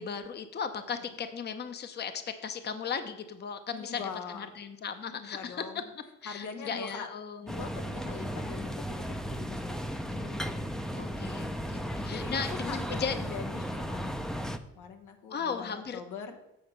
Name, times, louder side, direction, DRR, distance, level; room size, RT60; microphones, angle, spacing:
voice 1, 0.0-4.0 4.3-5.6 6.2-7.5 10.1-13.1 15.3-16.0, left 6 dB, 35° left, 9 dB, 0.7 m, -37 dB
voice 2, 3.7-4.5 5.1-5.9 6.2-7.1 7.4-10.0 12.1-14.4 14.7-16.3, left 5 dB, 85° left, 5 dB, 1.1 m, -42 dB
sound 1, 7.5-14.6, equal, ahead, 0.5 m, -35 dB
7.9 x 4.2 x 6.6 m, 0.92 s
cardioid pair, 90°, 30 cm